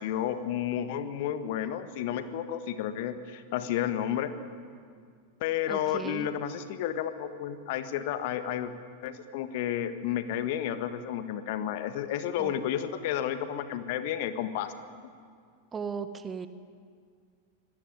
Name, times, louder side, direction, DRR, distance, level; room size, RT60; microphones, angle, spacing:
voice 1, 0.0-4.3 5.4-8.7 9.0-14.7, left 10 dB, 50° left, 10 dB, 1.6 m, -31 dB
voice 2, 5.7-6.3 12.4-12.5 15.7-16.5, right 6 dB, 20° right, 11 dB, 1.4 m, -36 dB
25.0 x 18.5 x 9.8 m, 2.1 s
figure-of-eight pair, 90°, 0 cm